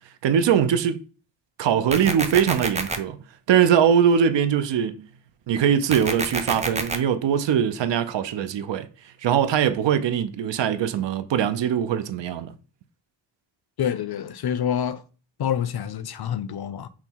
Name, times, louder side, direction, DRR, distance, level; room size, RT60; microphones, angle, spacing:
voice 1, 0.2-1.0 1.6-3.2 3.5-5.0 5.5-8.9 9.2-12.5, right 8 dB, 80° right, 0.6 m, -21 dB
sound 1, 1.9-3.0 5.9-7.0, right 2 dB, 15° right, 0.5 m, -27 dB
voice 2, 13.8-15.0 15.4-16.9, left 9 dB, 60° left, 0.5 m, -27 dB
5.8 x 2.0 x 4.4 m
wide cardioid pair, 150°, 43 cm